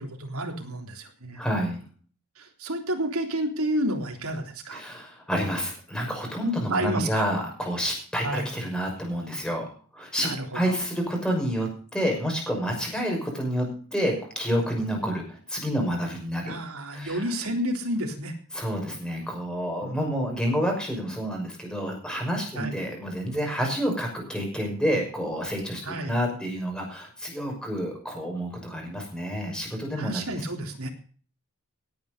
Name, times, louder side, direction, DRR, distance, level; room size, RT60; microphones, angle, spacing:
voice 1, 0.0-1.4 2.4-4.8 6.7-7.2 8.2-8.5 10.2-10.7 16.4-18.4 19.8-20.1 22.5-22.8 25.8-26.2 30.0-30.9, right 1 dB, 70° right, 3 dB, 3.6 m, -30 dB
voice 2, 1.4-1.8 4.7-9.7 9.9-16.5 16.9-17.3 18.5-30.4, equal, 5° left, 1 dB, 5.9 m, -29 dB
18.0 x 9.5 x 5.2 m, 0.42 s
head